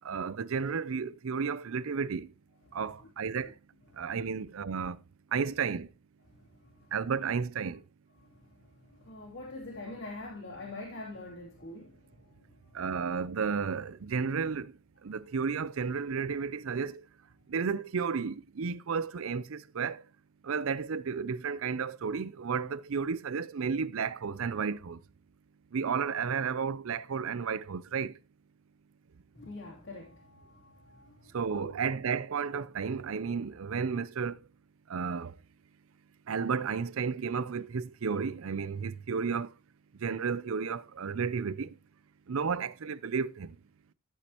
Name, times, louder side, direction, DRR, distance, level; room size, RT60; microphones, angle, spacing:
voice 1, 0.0-2.3 2.7-3.5 4.0-5.0 5.3-5.9 6.9-7.8 12.7-14.7 15.0-17.0 17.5-20.0 20.4-25.0 25.7-28.1 31.3-34.4 34.9-35.3 36.3-39.5 40.0-41.7 42.3-43.5, right 5 dB, 65° right, 0.5 m, -32 dB
voice 2, 6.6-6.9 8.2-8.5 8.7-12.4 12.7-12.8 29.3-31.7, left 2 dB, 60° left, 2.9 m, -45 dB
13.0 x 8.4 x 2.9 m
head